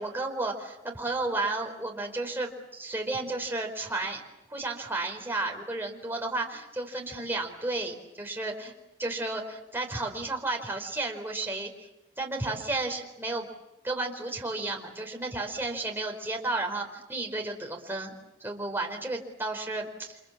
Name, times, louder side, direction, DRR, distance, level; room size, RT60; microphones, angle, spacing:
voice 1, 0.0-4.2 4.5-8.7 9.0-11.9 12.2-13.5 13.8-18.1 18.4-20.2, right 2 dB, 10° right, 1 dB, 4.4 m, -32 dB
30.0 x 26.5 x 7.4 m, 0.90 s
head